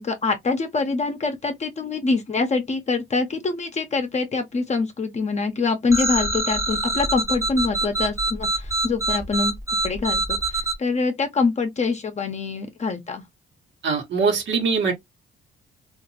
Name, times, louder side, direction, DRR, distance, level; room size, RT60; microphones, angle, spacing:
voice 1, 0.0-13.2, left 4 dB, 35° left, 0.7 m, -25 dB
sound 1, 5.9-10.7, right 2 dB, 15° right, 0.8 m, -25 dB
voice 2, 13.8-14.9, right 5 dB, 70° right, 1.2 m, -22 dB
2.8 x 2.5 x 2.7 m
cardioid pair, 90°, 20 cm